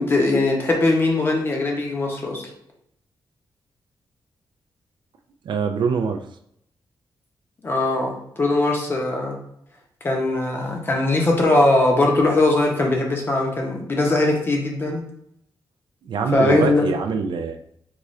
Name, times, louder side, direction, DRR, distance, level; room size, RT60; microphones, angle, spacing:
voice 1, 0.0-2.4 7.6-9.4 10.0-15.0 16.3-16.9, left 2 dB, 25° left, 0 dB, 0.7 m, -20 dB
voice 2, 5.4-6.2 16.1-17.7, right 5 dB, 70° right, 6 dB, 0.3 m, -24 dB
3.8 x 2.4 x 3.1 m, 0.72 s
wide cardioid pair, 160°, 8 cm